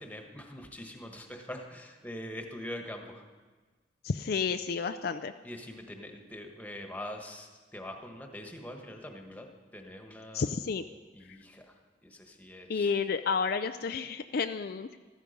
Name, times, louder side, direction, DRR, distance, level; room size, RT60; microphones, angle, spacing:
voice 1, 0.0-3.2 5.4-10.5 11.1-12.9, left 1 dB, 10° left, 3 dB, 1.4 m, -43 dB
voice 2, 4.0-5.3 10.3-10.8 12.7-14.9, left 5 dB, 60° left, 9 dB, 0.4 m, -31 dB
14.0 x 14.0 x 5.3 m, 1.4 s
head